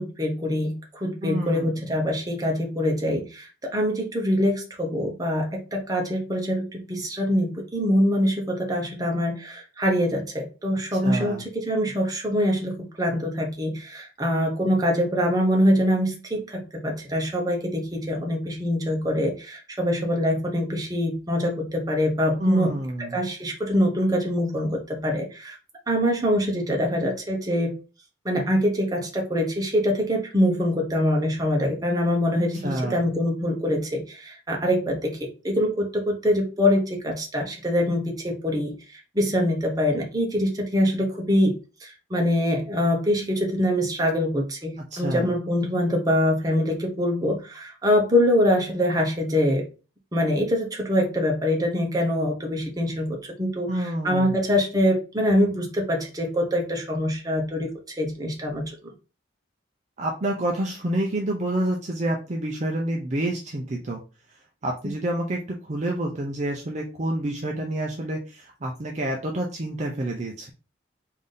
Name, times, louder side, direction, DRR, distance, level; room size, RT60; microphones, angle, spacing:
voice 1, 0.0-25.6 25.9-27.7 28.2-38.7 39.1-41.6 41.8-49.6 50.1-58.7, equal, 20° right, 0 dB, 0.8 m, -24 dB
voice 2, 1.2-1.7 10.9-11.4 22.4-23.2 32.6-33.0 44.9-45.3 53.7-54.3 60.0-64.0 64.6-70.5, right 1 dB, 35° right, 0 dB, 0.5 m, -28 dB
3.4 x 2.7 x 3.7 m, 0.32 s
head